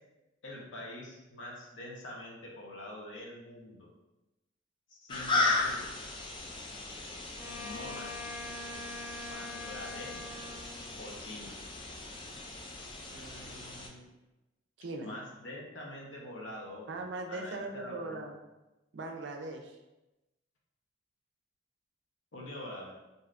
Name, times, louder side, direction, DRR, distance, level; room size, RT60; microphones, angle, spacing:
voice 1, 0.4-3.9 4.9-5.9 7.6-8.1 9.3-10.2 10.9-11.6 15.0-17.0 17.3-18.3 22.3-22.9, left 1 dB, 85° left, -2 dB, 0.7 m, -45 dB
sound 1, 5.1-13.9, left 3 dB, 25° left, 0.3 m, -36 dB
Wind instrument woodwind instrument, 7.4-10.9, left 2 dB, 5° left, 0.9 m, -44 dB
voice 2, 13.1-14.0 14.8-15.2 16.9-18.4 18.9-19.8, right 2 dB, 65° right, 4 dB, 0.4 m, -41 dB
3.3 x 2.6 x 2.4 m, 1.0 s
head